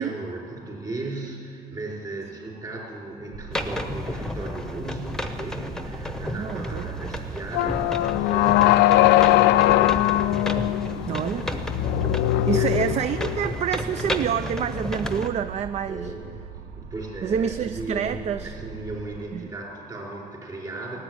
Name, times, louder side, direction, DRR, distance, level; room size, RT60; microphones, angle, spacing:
voice 1, 0.0-10.1 12.3-12.7 15.9-16.3 16.8-21.0, right 2 dB, 25° right, -2 dB, 4.9 m, -36 dB
sound 1, 3.3-19.2, right 6 dB, 75° right, 0.9 m, -41 dB
sound 2, 3.5-15.3, left 1 dB, 5° left, 1.0 m, -32 dB
voice 2, 6.2-6.9 11.1-11.5 12.5-16.1 17.2-18.5 19.3-19.5, right 8 dB, 40° right, 12 dB, 0.4 m, -27 dB
sound 3, 7.5-13.5, left 15 dB, 90° left, 0.4 m, -20 dB
15.5 x 8.9 x 9.7 m, 2.3 s
cardioid pair, 110°, 17 cm